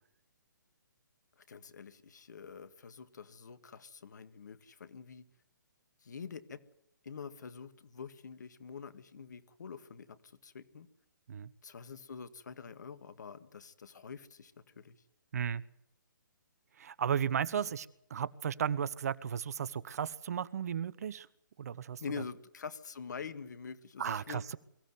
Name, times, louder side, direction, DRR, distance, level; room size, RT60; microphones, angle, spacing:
voice 1, 1.4-5.3 6.0-6.6 7.0-10.9 11.6-15.0 17.6-17.7 22.0-24.4, left 6 dB, 60° left, 13 dB, 1.9 m, -46 dB
voice 2, 16.8-21.3 21.6-22.0 24.0-24.6, right 8 dB, 50° right, 20 dB, 1.0 m, -34 dB
23.5 x 15.5 x 9.5 m, 0.75 s
figure-of-eight pair, 135°, 11 cm